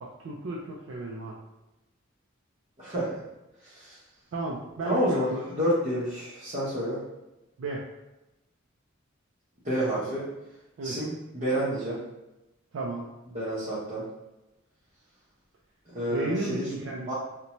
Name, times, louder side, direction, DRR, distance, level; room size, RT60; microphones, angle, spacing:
voice 1, 0.0-1.4 4.3-5.4 7.6-7.8 10.8-11.0 12.7-13.1 16.1-17.1, right 2 dB, 70° right, -4 dB, 0.4 m, -33 dB
voice 2, 2.8-3.2 3.6-4.0 4.8-7.0 9.6-10.3 10.8-12.0 13.3-14.0 15.9-16.7 17.1-17.2, equal, 35° right, -10 dB, 0.7 m, -29 dB
2.6 x 2.1 x 2.9 m, 0.98 s
head